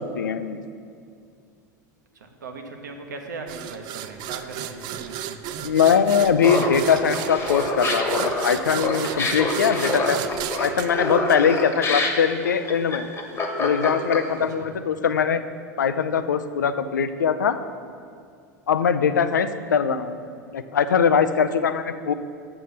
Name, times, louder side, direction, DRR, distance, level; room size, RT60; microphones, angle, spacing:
voice 1, 0.2-0.6 5.6-10.2 10.6-13.1 13.6-15.4 15.8-17.6 18.7-20.2 20.5-22.1, left 7 dB, 75° left, 11 dB, 0.5 m, -21 dB
voice 2, 2.1-5.2 5.5-5.7 14.4-14.7, right 3 dB, 75° right, 4 dB, 1.1 m, -38 dB
sound 1, 3.5-12.0, right 11 dB, 45° right, 0.5 m, -34 dB
Laughter, 6.4-14.4, left 2 dB, 25° left, 1.3 m, -26 dB
7.8 x 6.7 x 5.8 m, 2.3 s
figure-of-eight pair, 80°, 10 cm